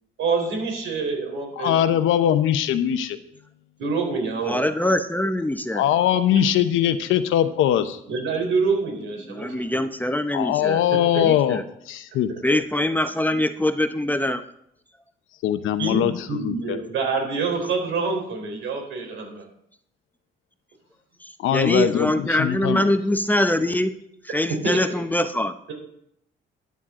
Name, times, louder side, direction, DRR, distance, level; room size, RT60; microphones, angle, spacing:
voice 1, 0.2-1.7 3.8-4.6 6.3-6.4 8.1-9.5 11.1-11.2 12.7-12.8 13.3-13.4 15.8-19.4 24.6-25.0, right 4 dB, 80° right, 2 dB, 4.0 m, -26 dB
voice 2, 1.6-3.2 5.7-8.0 10.3-11.6 11.9-12.3 15.4-16.8 21.4-22.8, left 10 dB, 90° left, 10 dB, 0.9 m, -21 dB
voice 3, 4.4-5.8 9.3-10.8 11.2-11.6 12.4-14.4 21.5-23.9 24.3-25.5, left 1 dB, 10° left, 8 dB, 0.8 m, -23 dB
13.0 x 9.7 x 3.8 m, 0.72 s
cardioid pair, 90°, 20 cm